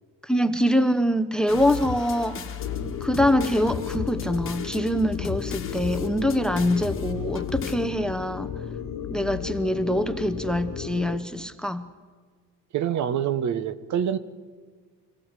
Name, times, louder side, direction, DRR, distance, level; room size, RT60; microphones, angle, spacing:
voice 1, 0.3-2.4 3.0-8.5 9.1-11.9, equal, ahead, 12 dB, 0.7 m, -24 dB
sound 1, 1.5-7.8, left 7 dB, 40° left, 1.6 m, -35 dB
sound 2, 2.6-11.2, left 8 dB, 60° left, 1.4 m, -34 dB
voice 2, 12.7-14.2, right 9 dB, 60° right, 14 dB, 1.0 m, -26 dB
24.5 x 15.5 x 7.5 m, 1.5 s
cardioid pair, 140°, 33 cm